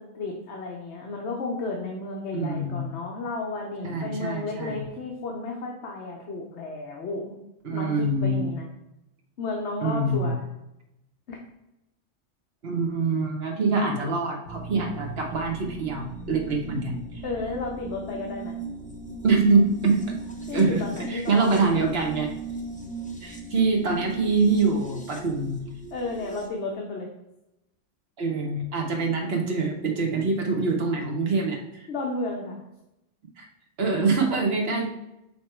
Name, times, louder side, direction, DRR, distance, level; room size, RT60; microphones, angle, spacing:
voice 1, 0.0-7.4 7.7-8.7 9.4-10.4 11.3-11.4 17.2-18.6 20.5-21.9 25.9-27.1 31.9-32.6, left 3 dB, 60° left, 0 dB, 1.1 m, -33 dB
voice 2, 2.3-2.9 3.8-4.8 7.6-8.5 9.8-10.3 12.6-17.2 19.2-20.0 20.5-22.3 23.2-25.6 28.2-31.8 33.4-33.5 33.8-34.9, right 3 dB, 50° right, 1 dB, 1.3 m, -25 dB
sound 1, 14.5-26.5, right 3 dB, 10° left, 0.5 m, -38 dB
7.1 x 3.1 x 4.4 m, 0.88 s
omnidirectional pair, 1.3 m